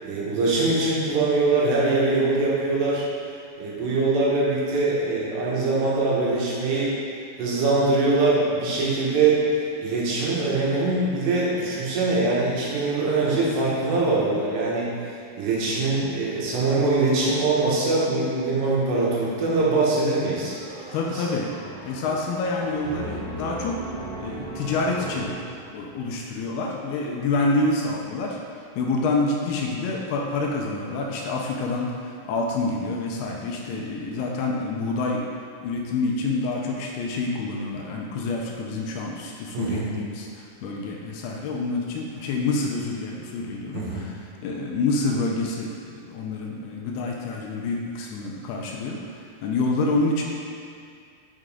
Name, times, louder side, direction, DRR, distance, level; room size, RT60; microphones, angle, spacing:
voice 1, 0.0-3.1 3.6-6.9 7.4-9.4 9.8-14.9 15.4-20.6 21.1-21.2 39.5-39.9 43.7-44.1, right 3 dB, 85° right, -6 dB, 3.5 m, -23 dB
sound 1, 20.5-26.0, right 2 dB, 70° right, 1.9 m, -37 dB
voice 2, 20.9-23.8 24.2-25.3 25.7-35.3 35.6-50.2, left 3 dB, 80° left, -1 dB, 2.5 m, -27 dB
6.6 x 6.3 x 3.7 m, 2.3 s
omnidirectional pair, 4.8 m